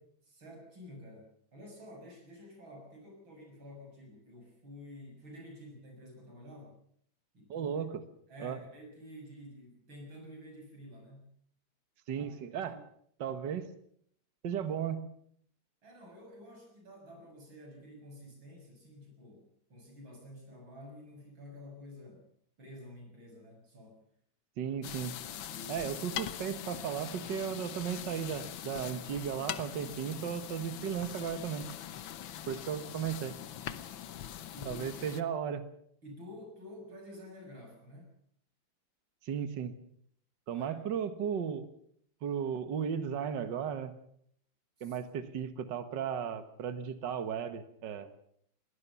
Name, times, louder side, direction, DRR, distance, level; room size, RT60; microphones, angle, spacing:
voice 1, 0.2-6.8 7.3-7.7 8.3-11.3 12.1-12.8 15.8-22.2 22.6-24.0 25.5-25.9 34.5-35.1 36.0-38.1 40.5-40.9 44.8-45.0, left 1 dB, 85° right, 2 dB, 7.2 m, -50 dB
voice 2, 7.5-8.0 8.4-8.6 12.1-12.8 13.2-13.7 14.4-15.0 24.6-25.2 25.7-31.7 32.5-33.3 34.7-35.6 39.2-39.7 40.5-41.7 42.2-43.9 44.8-48.1, right 8 dB, 65° right, 11 dB, 2.0 m, -35 dB
sound 1, 24.8-35.2, left 10 dB, 80° left, 1.8 m, -42 dB
21.5 x 17.5 x 7.0 m, 0.65 s
omnidirectional pair, 2.1 m